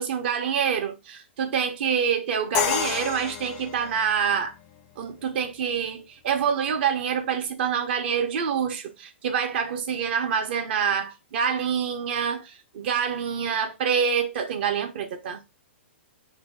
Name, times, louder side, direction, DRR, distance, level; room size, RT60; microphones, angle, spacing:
voice 1, 0.0-4.5 5.0-15.4, right 7 dB, 60° right, 0.7 m, -26 dB
Crash cymbal, 2.5-4.5, left 10 dB, 40° left, 0.4 m, -29 dB
2.7 x 2.2 x 3.3 m
hypercardioid pair, 130°, 7 cm